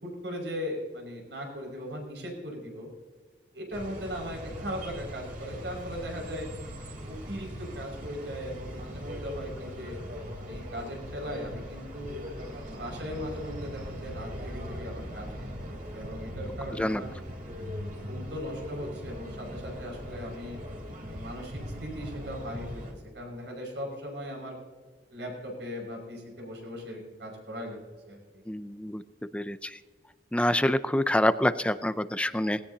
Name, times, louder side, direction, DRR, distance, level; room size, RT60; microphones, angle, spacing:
voice 1, 0.0-2.9 3.5-6.5 6.8-10.0 10.4-12.2 12.5-15.3 15.6-17.1 17.8-20.6 21.0-24.6 25.1-27.8 28.1-28.2, equal, 80° right, 0 dB, 5.8 m, -38 dB
sound 1, 3.7-22.9, equal, 55° right, 3.7 m, -40 dB
voice 2, 28.5-29.0 29.3-29.8 30.3-32.6, left 1 dB, 5° left, 12 dB, 0.5 m, -26 dB
19.5 x 17.0 x 2.9 m, 1.4 s
head